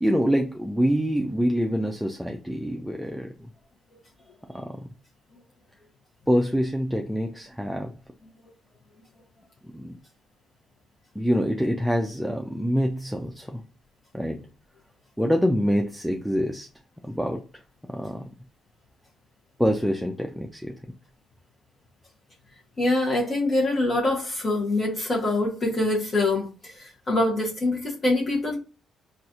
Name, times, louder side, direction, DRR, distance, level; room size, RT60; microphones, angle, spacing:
voice 1, 0.0-3.5 4.5-4.9 6.3-7.9 9.7-10.0 11.2-13.6 14.1-14.4 15.2-16.7 17.0-17.4 17.9-18.2 19.6-20.7, equal, ahead, 0.4 m, -25 dB
voice 2, 22.8-28.6, left 2 dB, 45° left, 0.9 m, -24 dB
4.0 x 2.4 x 2.4 m
cardioid pair, 90°, 0 cm